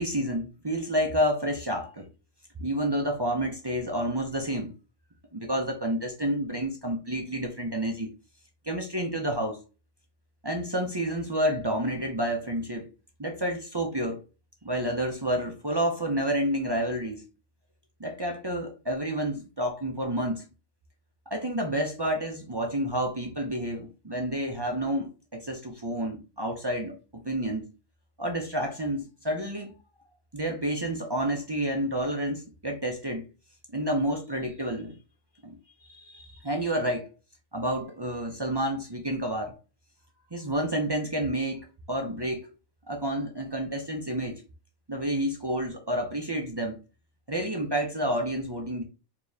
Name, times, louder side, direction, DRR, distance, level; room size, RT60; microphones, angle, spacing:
voice 1, 0.0-2.1 2.6-4.7 5.3-8.1 8.7-9.6 10.4-12.9 13.2-14.2 14.6-17.2 18.0-20.4 21.3-27.7 28.2-29.7 30.3-33.3 33.7-35.0 35.4-35.6 35.9-37.1 37.5-39.5 40.3-42.5 42.9-44.4 44.9-46.8 47.3-48.8, right 1 dB, 30° right, 0.4 m, -29 dB
4.8 x 2.9 x 2.6 m
omnidirectional pair, 1.4 m